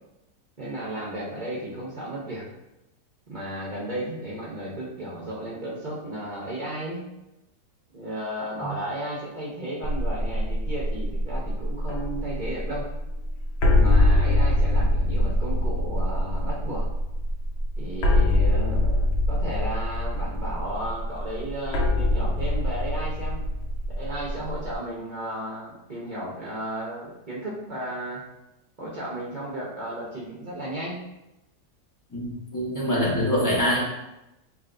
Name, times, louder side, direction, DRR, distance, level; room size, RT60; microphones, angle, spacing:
voice 1, 0.6-2.4 3.3-7.0 7.9-12.8 13.7-16.8 17.8-23.4 24.0-28.2 28.8-31.0 32.7-32.9, right 1 dB, 45° right, -7 dB, 0.6 m, -34 dB
sound 1, 9.8-24.7, left 1 dB, 80° left, 0.5 m, -24 dB
voice 2, 32.1-33.8, equal, 15° left, -6 dB, 0.6 m, -24 dB
4.8 x 2.9 x 2.5 m, 0.92 s
omnidirectional pair, 1.9 m